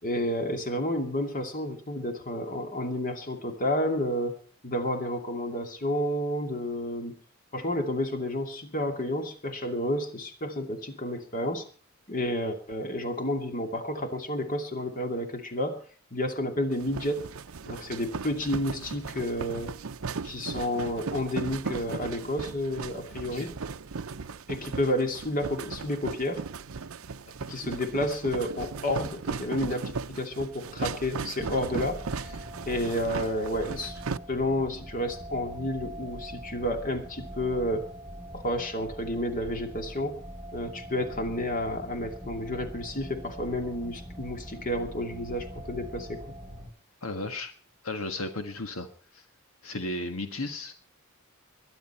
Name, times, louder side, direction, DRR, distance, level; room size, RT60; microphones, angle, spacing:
voice 1, 0.0-4.3 4.6-7.2 7.5-11.6 12.1-15.8 16.1-17.3 17.7-19.7 20.2-23.5 24.5-26.4 27.5-32.4 32.7-34.0 34.3-37.9 38.3-40.2 40.5-46.2, left 1 dB, 40° left, 5 dB, 2.6 m, -30 dB
sound 1, 16.7-34.2, right 4 dB, 85° right, 0.7 m, -37 dB
sound 2, 31.4-46.7, equal, 10° right, 1.3 m, -43 dB
voice 2, 47.0-47.5 47.8-48.9 49.1-49.2 49.6-50.7, left 2 dB, 75° left, 6 dB, 1.6 m, -34 dB
22.0 x 11.0 x 4.4 m, 0.40 s
head